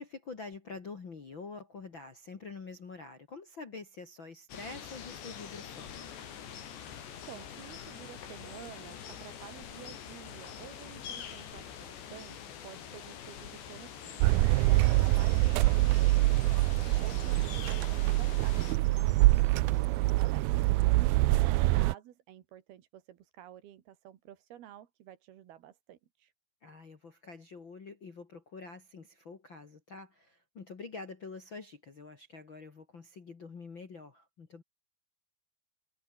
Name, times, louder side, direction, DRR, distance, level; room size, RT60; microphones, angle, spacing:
voice 1, 0.0-6.1 15.1-15.2 21.3-21.6 26.6-34.6, left 4 dB, 35° left, 2.4 m, -46 dB
sound 1, 4.5-18.8, left 8 dB, 85° left, 5.5 m, -45 dB
voice 2, 7.3-26.3, right 11 dB, 70° right, 3.5 m, -51 dB
sound 2, 14.2-21.9, right 20 dB, 85° right, 2.2 m, -25 dB
sound 3, 15.8-21.2, right 3 dB, 35° right, 7.4 m, -60 dB
omnidirectional pair, 4.8 m